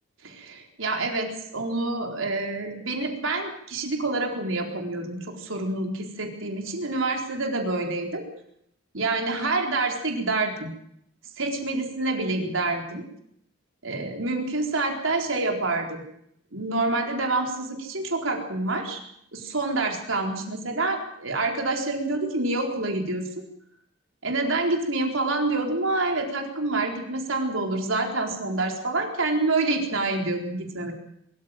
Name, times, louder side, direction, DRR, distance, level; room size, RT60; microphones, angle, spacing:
voice 1, 0.2-8.2 8.9-10.7 11.4-13.0 13.8-16.0 16.5-19.0 19.3-23.3 24.2-30.9, right 2 dB, 85° right, 3 dB, 4.2 m, -27 dB
23.5 x 14.5 x 9.1 m, 0.73 s
head